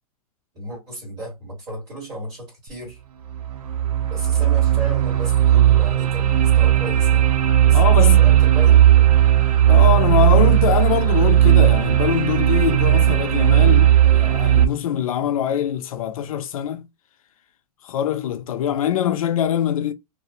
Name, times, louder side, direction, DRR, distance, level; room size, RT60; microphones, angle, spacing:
voice 1, 0.5-3.0 4.1-7.3 7.7-8.8 9.1-9.2, right 1 dB, 20° right, 1.5 m, -34 dB
sound 1, 2.7-2.8 3.3-14.7, right 11 dB, 90° right, 0.6 m, -16 dB
voice 2, 7.7-8.2 9.7-16.9 17.8-19.9, left 10 dB, 65° left, 0.4 m, -23 dB
2.4 x 2.0 x 2.6 m
supercardioid pair, 175°, 19 cm